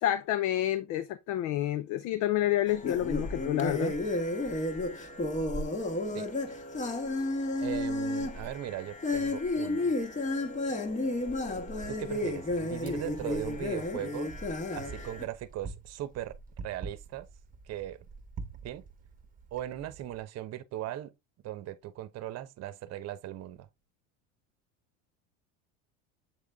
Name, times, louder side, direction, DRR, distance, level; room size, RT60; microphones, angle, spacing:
voice 1, 0.0-4.0, left 13 dB, 55° left, 0.6 m, -29 dB
sound 1, 2.7-15.2, left 2 dB, 20° left, 1.2 m, -32 dB
voice 2, 7.6-10.0 11.9-14.3 14.7-17.3 17.7-18.0 18.6-18.8 19.5-21.1 21.4-23.7, right 13 dB, 45° right, 0.9 m, -38 dB
Wind, 11.3-20.2, right 4 dB, 25° right, 1.1 m, -47 dB
7.8 x 3.8 x 3.5 m
supercardioid pair, 110°, 35 cm